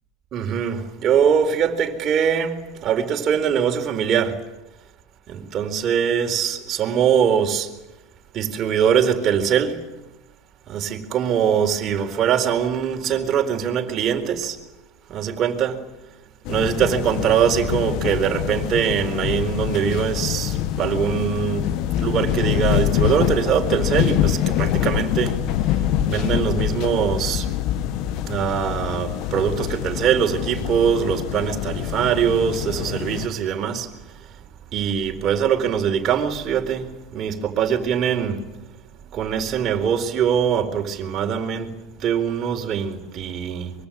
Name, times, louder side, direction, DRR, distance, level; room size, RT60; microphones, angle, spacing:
voice 1, 0.3-4.4 5.3-7.7 8.3-9.8 10.7-14.6 15.1-15.8 16.5-21.7 22.0-25.4 26.1-27.5 28.3-34.2 34.7-38.4 39.1-43.7, right 8 dB, 40° right, 4.3 m, -22 dB
sound 1, 16.4-33.3, left 11 dB, 55° left, 1.9 m, -25 dB
24.5 x 23.0 x 9.0 m
hypercardioid pair, 90°, 0 cm